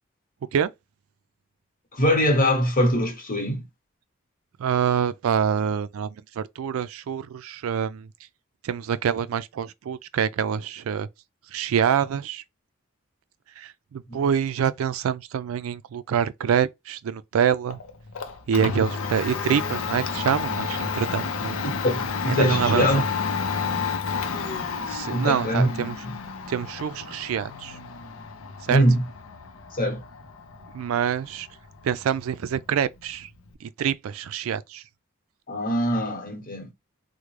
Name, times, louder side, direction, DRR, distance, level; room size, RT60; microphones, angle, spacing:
voice 1, 1.9-3.6 14.1-14.2 21.6-23.0 25.1-25.7 28.7-29.0 29.7-30.0 35.5-36.7, equal, 45° left, 1.1 m, -22 dB
voice 2, 4.6-8.1 8.6-11.1 11.5-12.4 13.6-17.8 18.5-21.6 22.3-22.9 24.9-26.0 26.5-27.8 28.6-28.8 30.7-31.5 31.8-33.3 33.6-34.8, right 8 dB, 85° right, 0.3 m, -26 dB
Domestic sounds home sounds, 17.7-33.5, left 5 dB, 85° left, 0.6 m, -31 dB
3.6 x 2.1 x 3.1 m
head